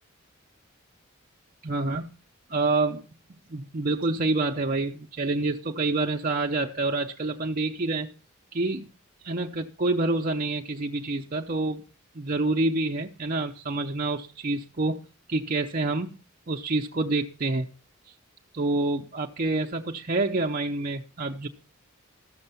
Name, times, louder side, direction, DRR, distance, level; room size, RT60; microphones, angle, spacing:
voice 1, 1.6-2.1 2.5-3.0 3.3-8.1 8.5-8.9 9.2-11.8 12.1-16.2 16.5-17.7 18.1-18.2 18.5-21.5, right 2 dB, 40° right, 0.7 m, -27 dB
14.0 x 6.6 x 6.9 m
head